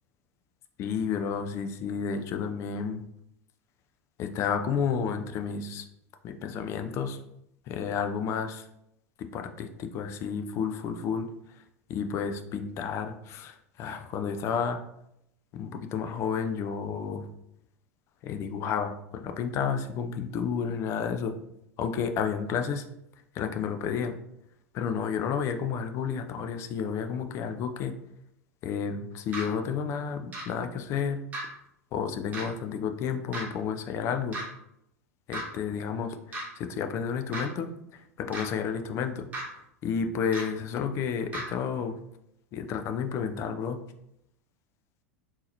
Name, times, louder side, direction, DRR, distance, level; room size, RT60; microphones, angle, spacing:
voice 1, 0.8-3.0 4.2-5.9 6.2-7.2 7.7-8.6 9.2-11.3 11.9-14.8 15.5-17.3 18.2-21.3 21.8-22.9 23.3-24.1 24.7-27.9 28.6-31.2 31.9-34.4 35.3-39.3 39.8-42.0 42.5-43.8, left 6 dB, 35° left, 7 dB, 0.4 m, -31 dB
sound 1, 29.3-29.4 30.3-30.4 31.3-31.4 32.3-32.4 33.3-33.4 34.3-34.4 35.3-35.4 36.3-36.4 37.3-37.4 38.3-38.4 39.3-39.4 40.3-40.4 41.3-41.4, right 1 dB, 20° right, 1.1 m, -34 dB
3.7 x 2.8 x 2.8 m, 0.80 s
figure-of-eight pair, 85°, 8 cm